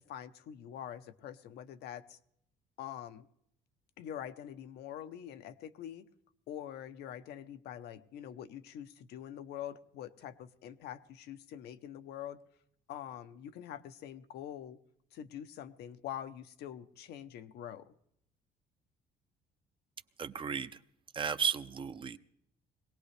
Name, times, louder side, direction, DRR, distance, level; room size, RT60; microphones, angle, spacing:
voice 1, 0.0-2.2 2.8-3.3 4.0-6.1 6.5-12.4 12.9-14.8 15.1-17.9, left 10 dB, 75° left, 10 dB, 0.8 m, -45 dB
voice 2, 20.2-20.7 21.1-22.2, right 6 dB, 30° right, 12 dB, 0.6 m, -34 dB
22.5 x 17.5 x 3.3 m, 0.73 s
cardioid pair, 110°, 17 cm